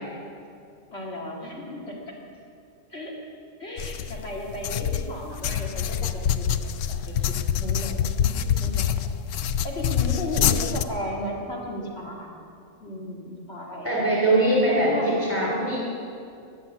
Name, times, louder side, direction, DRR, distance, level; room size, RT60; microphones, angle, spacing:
voice 1, 0.9-2.2 2.9-3.1 3.6-9.2 9.6-12.3 12.8-13.9 14.6-15.2, left 1 dB, 55° left, -3 dB, 2.7 m, -35 dB
sound 1, 3.8-10.8, left 9 dB, 75° left, 1.0 m, -26 dB
voice 2, 13.8-15.8, right 1 dB, 10° left, -4 dB, 3.7 m, -22 dB
20.5 x 7.8 x 8.3 m, 2.5 s
omnidirectional pair, 1.3 m